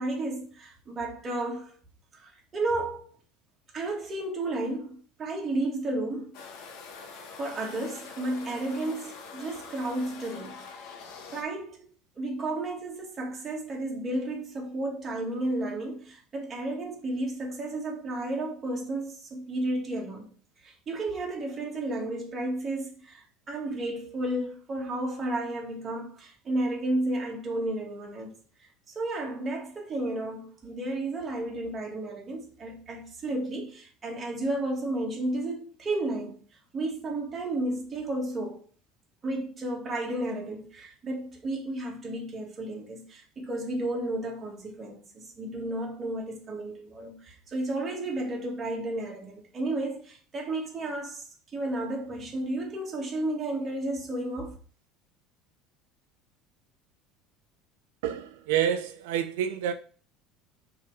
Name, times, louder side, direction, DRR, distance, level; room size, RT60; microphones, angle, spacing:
voice 1, 0.0-1.7 2.1-3.1 3.7-6.4 7.4-10.6 11.3-20.3 20.6-28.3 28.6-36.4 36.7-38.6 39.2-54.5, right 2 dB, 20° right, 1.7 m, -32 dB
sound 1, 6.3-11.4, left 5 dB, 60° left, 1.3 m, -45 dB
voice 2, 58.0-59.7, right 9 dB, 90° right, 0.6 m, -28 dB
5.8 x 3.8 x 4.7 m
cardioid pair, 155°, 0 cm